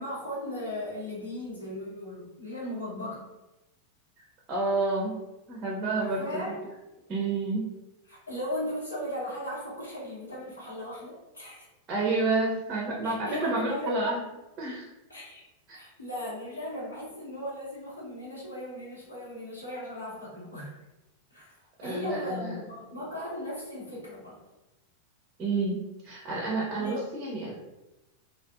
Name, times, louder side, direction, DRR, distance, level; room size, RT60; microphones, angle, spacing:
voice 1, 0.0-3.3 6.0-6.6 8.1-11.6 13.0-14.0 15.1-15.4 15.7-20.8 21.3-24.4 26.7-27.1, left 1 dB, 80° left, -7 dB, 1.0 m, -37 dB
voice 2, 4.2-5.1 5.5-6.6 7.1-7.7 11.9-14.2 14.6-14.9 15.7-15.8 21.8-22.6 25.4-27.6, right 3 dB, 30° right, -3 dB, 0.6 m, -29 dB
2.5 x 2.2 x 2.3 m, 0.99 s
figure-of-eight pair, 90°, 0 cm